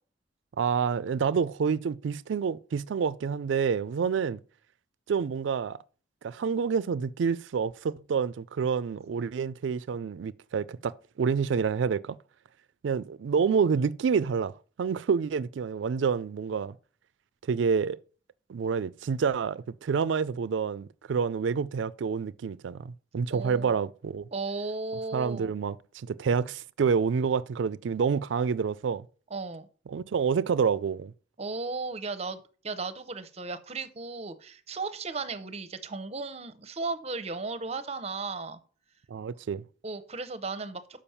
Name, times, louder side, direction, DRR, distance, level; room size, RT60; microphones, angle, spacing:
voice 1, 0.6-4.4 5.1-5.8 6.2-12.2 12.8-14.5 14.8-16.7 17.5-18.0 18.5-24.3 25.1-29.0 29.9-31.1 39.1-39.6, right 6 dB, 80° right, 0.4 m, -28 dB
voice 2, 23.3-23.8 24.3-25.5 29.3-29.7 31.4-38.6 39.8-40.8, right 3 dB, 35° right, 0.7 m, -35 dB
7.0 x 5.2 x 5.6 m
head